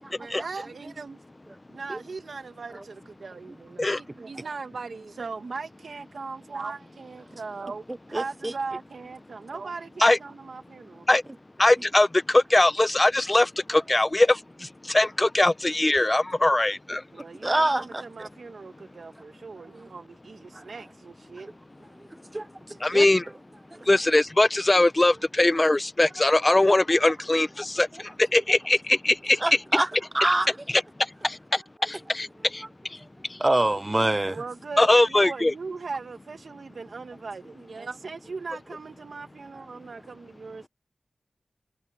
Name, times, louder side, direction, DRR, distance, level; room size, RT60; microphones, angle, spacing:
voice 1, 0.1-1.2 1.7-11.1 17.1-21.5 34.3-40.7, right 4 dB, 75° right, 1.6 m, -39 dB
voice 2, 7.9-8.5 17.4-18.3 20.5-20.7 22.3-23.1 23.7-23.8 29.4-29.9 30.1-30.6 33.4-34.4, right 1 dB, 25° right, 0.5 m, -26 dB
voice 3, 11.6-17.0 22.8-23.3 23.8-29.4 30.7-33.0 33.3-33.4 34.8-35.5, left 2 dB, 30° left, 0.7 m, -21 dB
wide cardioid pair, 60°, 0 cm